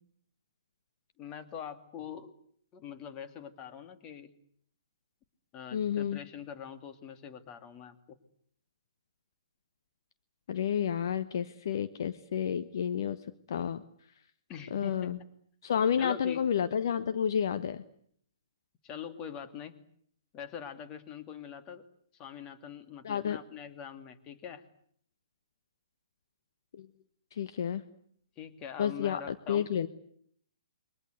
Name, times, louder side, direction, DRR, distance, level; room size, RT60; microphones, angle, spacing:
voice 1, 1.2-2.3 2.7-4.3 5.5-8.2 14.5-15.1 16.0-16.5 18.8-19.8 20.3-21.9 22.1-24.6 28.4-29.7, left 8 dB, 25° left, 9 dB, 2.5 m, -44 dB
voice 2, 5.7-6.2 10.5-13.2 13.5-13.8 14.7-15.2 15.6-17.8 23.0-23.4 26.8-26.9 27.3-27.8 28.8-29.9, left 8 dB, 50° left, 11 dB, 1.2 m, -30 dB
28.0 x 23.5 x 8.1 m, 0.65 s
figure-of-eight pair, 125°, 3 cm